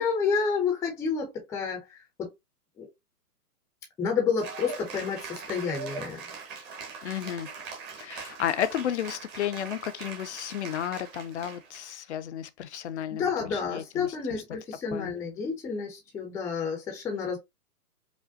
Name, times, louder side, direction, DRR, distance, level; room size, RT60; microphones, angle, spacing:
voice 1, 0.0-2.3 2.8-2.9 4.0-6.2 13.1-17.4, left 5 dB, 5° left, 0.5 m, -30 dB
Cheering / Applause, 4.4-11.9, right 5 dB, 20° right, 0.9 m, -41 dB
voice 2, 7.0-7.5 8.0-14.4 14.9-15.1, left 10 dB, 50° left, 0.5 m, -33 dB
5.0 x 2.1 x 2.6 m
figure-of-eight pair, 120°, 46 cm